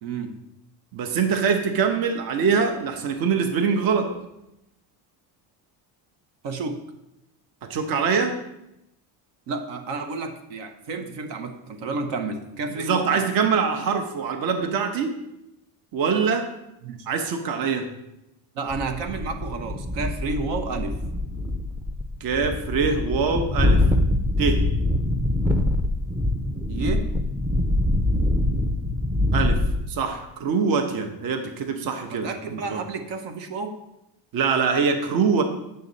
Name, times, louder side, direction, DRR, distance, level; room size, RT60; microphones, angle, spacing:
voice 1, 0.0-0.3 6.4-6.8 9.5-13.3 16.8-17.1 18.5-21.0 26.7-27.1 32.1-33.8, right 3 dB, 70° right, 6 dB, 1.1 m, -31 dB
voice 2, 0.9-4.1 7.6-8.4 12.8-15.1 15.9-16.5 17.1-17.9 22.2-23.8 24.4-24.6 29.3-29.6 29.9-32.8 34.3-35.4, right 5 dB, 50° right, 6 dB, 1.0 m, -23 dB
sound 1, 18.7-29.8, left 1 dB, 5° right, 0.4 m, -24 dB
9.3 x 6.6 x 4.0 m, 0.88 s
cardioid pair, 130°, 45 cm